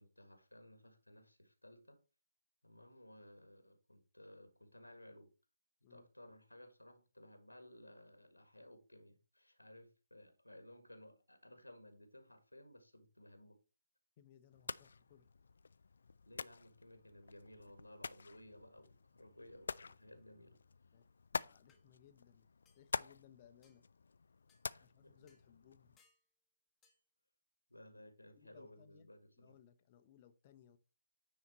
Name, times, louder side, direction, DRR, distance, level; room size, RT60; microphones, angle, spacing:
voice 1, 0.0-2.0 2.6-5.3 5.9-13.6 16.2-20.6 24.7-25.2 27.7-29.5, left 1 dB, 90° left, 1.6 m, -58 dB
voice 2, 14.2-15.3 20.9-21.0 21.3-22.5 22.7-23.8 24.8-26.0 28.4-29.1 29.4-30.8, left 9 dB, 30° left, 0.8 m, -64 dB
sound 1, 14.5-26.0, left 4 dB, 60° left, 0.3 m, -48 dB
sound 2, 21.7-21.8 22.6-22.9 23.6-23.8 24.5-24.7 25.3-25.5 26.0-26.2 26.8-27.0, left 5 dB, 10° left, 1.2 m, -73 dB
9.5 x 4.2 x 4.3 m
figure-of-eight pair, 140°, 0 cm